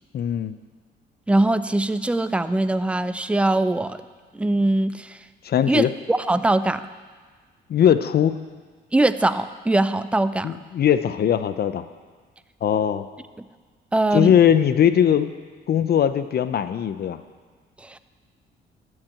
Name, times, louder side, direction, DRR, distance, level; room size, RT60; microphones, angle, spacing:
voice 1, 0.1-0.6 5.4-5.9 7.7-8.4 10.4-11.8 12.6-13.1 14.1-15.3 15.7-17.2, left 9 dB, 55° left, 12 dB, 0.6 m, -20 dB
voice 2, 1.3-4.0 4.3-5.2 5.7-6.9 8.9-10.6 13.9-14.3 17.8-18.0, right 2 dB, 5° right, 12 dB, 0.4 m, -22 dB
13.0 x 4.7 x 8.8 m, 1.5 s
cardioid pair, 90°, 20 cm